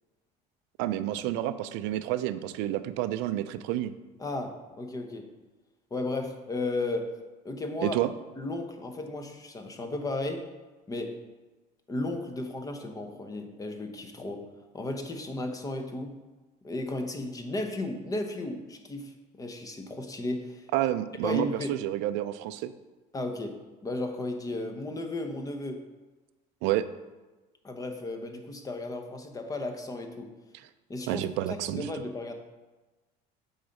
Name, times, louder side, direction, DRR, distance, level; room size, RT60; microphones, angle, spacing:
voice 1, 0.8-3.9 7.8-8.1 20.7-22.7 26.6-26.8 31.1-31.9, right 13 dB, 70° right, 12 dB, 0.5 m, -29 dB
voice 2, 4.2-5.3 5.9-7.1 7.4-8.0 8.4-10.4 10.9-11.1 11.9-14.4 14.7-16.1 16.6-20.7 21.2-21.8 23.1-23.6 23.8-25.8 27.6-30.3 30.9-31.2 31.7-32.3, left 2 dB, 20° left, 5 dB, 0.9 m, -34 dB
8.0 x 4.0 x 5.3 m, 1.2 s
cardioid pair, 130°, 19 cm